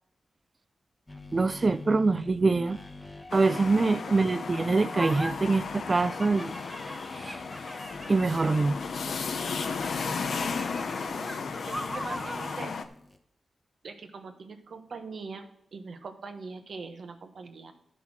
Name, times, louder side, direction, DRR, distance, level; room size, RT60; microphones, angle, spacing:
sound 1, 1.1-13.2, left 2 dB, 20° left, 1.1 m, -45 dB
voice 1, 1.3-2.8 3.3-6.5 7.1-7.4 8.1-8.8, right 3 dB, 35° right, 0.3 m, -24 dB
sound 2, 3.3-12.8, left 5 dB, 70° left, 0.7 m, -35 dB
sound 3, 4.9-5.3 6.0-8.8 9.4-12.6, equal, 5° right, 0.9 m, -40 dB
voice 2, 11.1-12.8 13.8-17.7, right 4 dB, 65° right, 1.1 m, -42 dB
11.5 x 5.7 x 6.1 m
wide cardioid pair, 105°, 0 cm